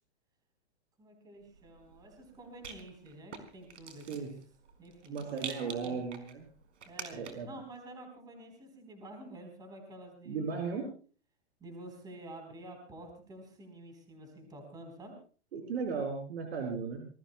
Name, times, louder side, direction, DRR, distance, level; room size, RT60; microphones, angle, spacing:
voice 1, 1.0-4.4 4.8-6.0 6.9-10.7 11.6-15.1, right 1 dB, 10° right, 4 dB, 3.8 m, -49 dB
Rattle, 1.5-7.6, right 6 dB, 85° right, 4.7 m, -48 dB
voice 2, 5.1-6.4 7.1-7.5 10.3-10.8 15.5-17.1, right 5 dB, 60° right, 2 dB, 4.5 m, -36 dB
27.0 x 20.0 x 2.2 m, 0.41 s
hypercardioid pair, 165°, 35 cm